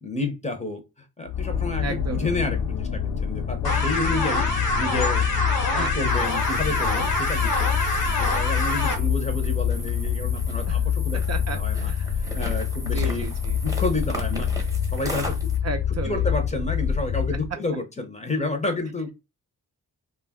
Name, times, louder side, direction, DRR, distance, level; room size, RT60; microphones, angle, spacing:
voice 1, 0.0-5.3 5.8-11.2 11.5-13.2 13.6-14.5 14.9-15.5 16.0-19.1, left 2 dB, 20° left, 0.6 m, -30 dB
sound 1, 1.3-17.5, left 8 dB, 70° left, 0.6 m, -26 dB
voice 2, 1.8-2.3 5.7-6.1 10.7-10.8 11.3-12.2 12.8-13.6 15.6-16.3, right 4 dB, 45° right, 0.5 m, -34 dB
sound 2, 3.6-8.9, left 2 dB, 90° left, 0.9 m, -26 dB
sound 3, 6.1-15.6, equal, 10° right, 0.8 m, -38 dB
2.3 x 2.2 x 3.5 m
cardioid pair, 75°, 36 cm